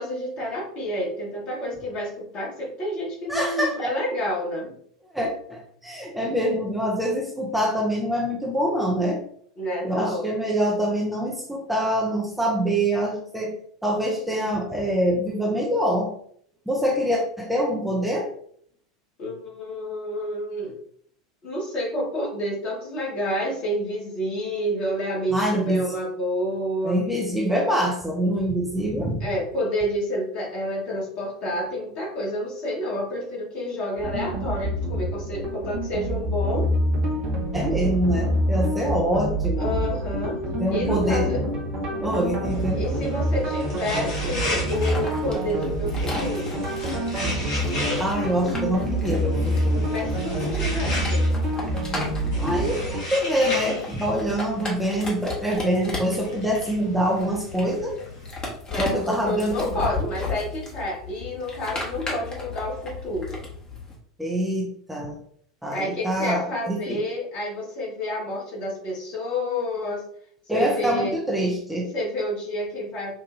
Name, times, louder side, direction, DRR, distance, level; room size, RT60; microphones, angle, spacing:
voice 1, 0.0-4.7 9.6-10.2 19.2-20.8 21.4-27.0 29.2-36.7 39.6-40.4 40.7-41.4 42.7-46.6 49.9-51.2 58.7-63.4 65.7-70.0 70.5-71.2 71.9-73.1, equal, 40° left, -2 dB, 1.6 m, -29 dB
voice 2, 3.3-3.9 5.1-9.2 9.8-13.6 13.8-16.1 16.7-18.3 25.3-26.0 26.8-29.3 37.5-39.7 40.6-41.4 42.0-42.8 48.0-49.9 52.3-58.0 58.7-60.0 64.2-65.2 65.6-67.0 70.5-71.9, equal, 5° right, -2 dB, 0.8 m, -25 dB
sound 1, 34.0-53.0, equal, 40° right, 1.3 m, -26 dB
sound 2, 42.5-58.3, left 1 dB, 60° left, 1.5 m, -35 dB
sound 3, 44.2-63.9, left 3 dB, 25° left, 1.3 m, -36 dB
5.4 x 2.6 x 2.6 m, 0.62 s
figure-of-eight pair, 85°, 3 cm